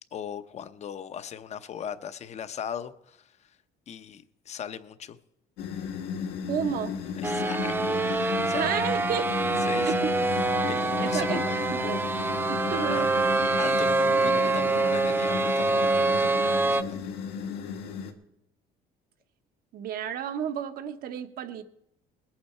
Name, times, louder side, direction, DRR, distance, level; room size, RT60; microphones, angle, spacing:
voice 1, 0.1-3.3 3.9-5.2 7.2-7.8 8.0-9.0 9.6-9.9 10.3-11.6 12.7-13.0 13.5-17.0, left 8 dB, 40° left, 0.8 m, -39 dB
sound 1, 5.6-18.1, left 6 dB, 85° left, 1.7 m, -34 dB
voice 2, 6.5-6.9 8.5-9.3 9.8-10.1 11.0-11.4 11.7-12.0 12.5-13.1 19.7-21.6, right 9 dB, 60° right, 1.1 m, -31 dB
sound 2, 7.2-16.8, right 3 dB, 15° right, 0.5 m, -25 dB
20.0 x 8.7 x 4.4 m
cardioid pair, 125°, 17 cm